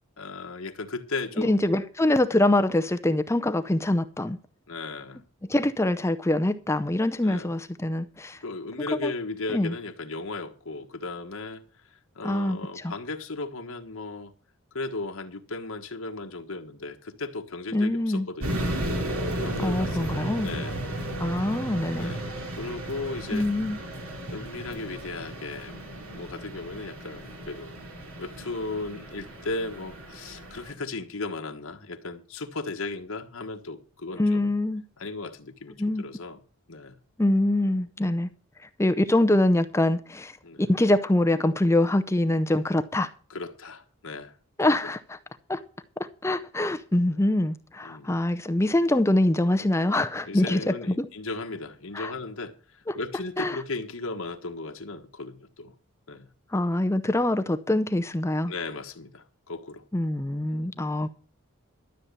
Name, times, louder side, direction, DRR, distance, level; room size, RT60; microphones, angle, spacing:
voice 1, 0.2-1.8 4.7-5.2 7.2-7.5 8.4-14.3 14.7-18.7 19.4-20.9 21.9-23.5 24.3-27.7 28.2-34.5 35.0-36.4 36.7-37.0 40.4-40.7 43.3-44.4 47.8-48.2 50.2-55.7 56.1-56.3 58.5-59.8 60.5-60.8, left 3 dB, 75° left, 1.4 m, -36 dB
voice 2, 1.4-4.4 5.5-8.4 9.0-9.1 9.5-9.7 12.2-12.9 17.7-18.3 19.6-20.5 21.2-22.1 23.3-23.8 34.2-34.8 35.8-36.0 37.2-38.3 38.8-43.1 44.6-45.2 45.5-45.6 46.0-51.1 51.9-52.1 52.9-53.0 53.4-53.6 56.5-58.5 59.9-61.1, left 1 dB, 10° left, 0.5 m, -24 dB
sound 1, 18.4-30.7, right 1 dB, 75° right, 2.7 m, -34 dB
13.0 x 7.3 x 6.8 m
head